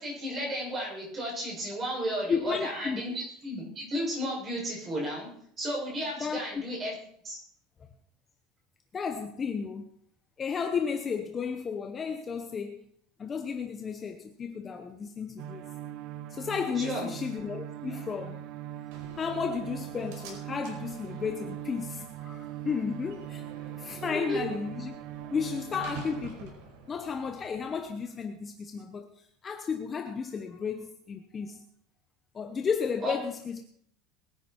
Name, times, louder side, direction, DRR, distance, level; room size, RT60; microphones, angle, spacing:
voice 1, 0.0-5.3 5.6-6.9 7.2-7.4 16.7-17.1 24.0-24.5 33.0-33.1, equal, 20° right, 6.8 m, -33 dB
voice 2, 2.3-3.0 6.2-6.4 8.9-9.9 10.4-12.8 13.2-15.7 16.3-18.4 19.2-23.4 23.8-24.9 25.3-26.6 26.9-31.6 32.3-33.6, left 6 dB, 20° left, 0.8 m, -33 dB
sound 1, 15.4-26.2, right 12 dB, 45° right, 0.7 m, -41 dB
Slam, 18.9-27.9, right 3 dB, 70° right, 5.0 m, -49 dB
22.0 x 10.0 x 4.5 m
cardioid pair, 175°, 0 cm